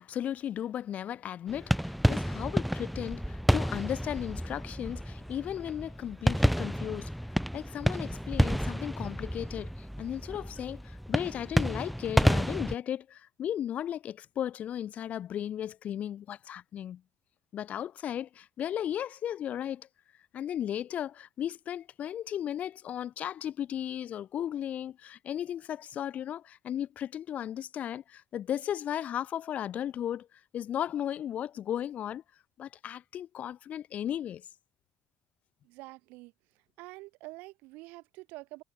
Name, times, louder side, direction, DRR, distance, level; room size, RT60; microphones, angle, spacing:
voice 1, 0.0-7.1 7.5-17.0 17.5-19.9 20.3-30.3 30.5-32.2 32.6-34.4, left 10 dB, 55° left, 0.8 m, -35 dB
sound 1, 1.5-12.7, equal, ahead, 0.5 m, -30 dB
voice 2, 35.6-36.3 36.8-38.6, right 23 dB, 75° right, 1.4 m, -46 dB
supercardioid pair, 75°, 3 cm